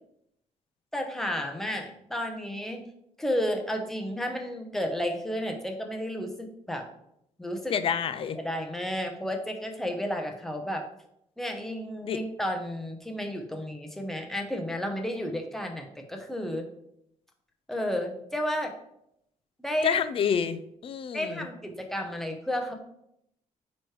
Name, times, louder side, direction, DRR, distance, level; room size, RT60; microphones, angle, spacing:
voice 1, 0.9-2.8 3.2-6.9 7.4-7.7 8.3-10.8 11.4-16.7 17.7-18.7 19.6-20.0 21.1-22.7, equal, 5° left, 3 dB, 0.8 m, -32 dB
voice 2, 7.7-8.4 12.0-12.2 19.8-21.5, left 7 dB, 45° left, 13 dB, 0.4 m, -28 dB
9.2 x 3.1 x 4.7 m, 0.77 s
cardioid pair, 170°, 13 cm